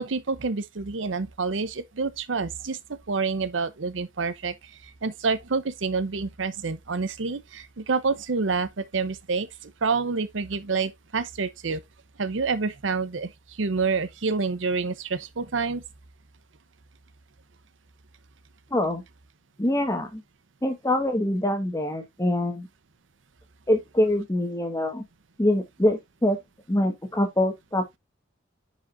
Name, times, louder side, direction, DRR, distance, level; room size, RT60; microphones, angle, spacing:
voice 1, 0.0-4.5 5.0-11.8 12.2-13.3 13.6-15.8, right 4 dB, 75° right, 0.7 m, -28 dB
voice 2, 18.7-19.0 19.6-20.2 20.6-22.7 23.7-25.0 25.4-26.4 26.7-28.0, left 1 dB, 15° left, 1.5 m, -24 dB
10.0 x 5.0 x 2.5 m
head